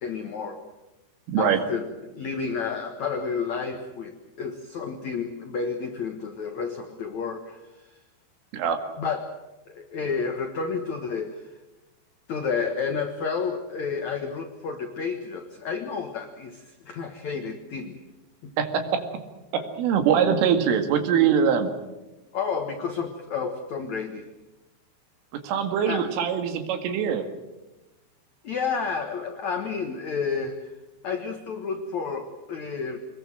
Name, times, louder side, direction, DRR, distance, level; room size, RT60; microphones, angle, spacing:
voice 1, 0.0-0.6 1.4-7.9 9.0-9.3 9.7-11.5 12.3-18.0 18.4-18.5 22.3-24.3 25.8-26.1 28.4-30.7 31.0-33.0, left 5 dB, 80° left, 6 dB, 1.6 m, -31 dB
voice 2, 1.3-1.6 8.5-8.8 18.6-19.0 19.5-21.7 25.4-27.2, right 7 dB, 80° right, 7 dB, 4.6 m, -23 dB
25.0 x 21.0 x 7.5 m, 1.1 s
omnidirectional pair, 5.7 m